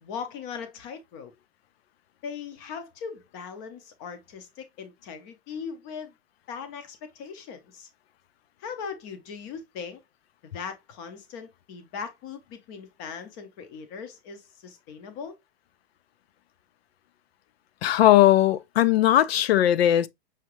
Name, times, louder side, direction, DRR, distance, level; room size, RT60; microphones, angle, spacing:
voice 1, 0.0-1.3 2.2-6.1 6.5-7.9 8.6-10.0 10.4-15.3, left 6 dB, 20° left, 0.5 m, -39 dB
voice 2, 17.8-20.1, left 13 dB, 80° left, 0.6 m, -19 dB
5.9 x 2.8 x 2.9 m
supercardioid pair, 180°, 31 cm